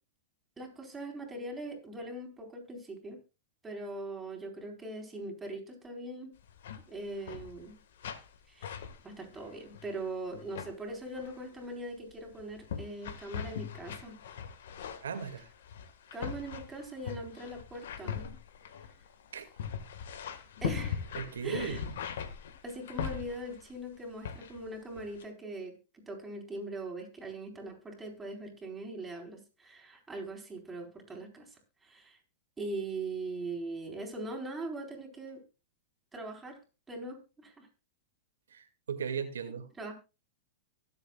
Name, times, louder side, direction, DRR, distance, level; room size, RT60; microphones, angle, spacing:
voice 1, 0.6-3.2 3.6-6.3 6.9-7.8 8.5-14.2 16.1-18.3 20.6-21.0 21.4-21.8 22.6-31.5 31.8-32.2 32.6-35.4 36.1-36.6 36.9-37.7 39.8-39.9, right 2 dB, 10° right, 1 dB, 4.5 m, -41 dB
sound 1, 6.4-6.8 7.1-7.7 8.0-8.3 8.6-10.0 10.3-10.7 11.2-11.5 12.1-23.7 24.2-24.7 25.0-25.2, left 8 dB, 75° left, 1.6 m, -40 dB
voice 2, 15.0-15.5 19.3-19.5 21.1-21.9 38.5-39.7, right 7 dB, 85° right, 7 dB, 2.2 m, -37 dB
23.5 x 7.9 x 2.4 m, 0.29 s
hypercardioid pair, 120°, 0 cm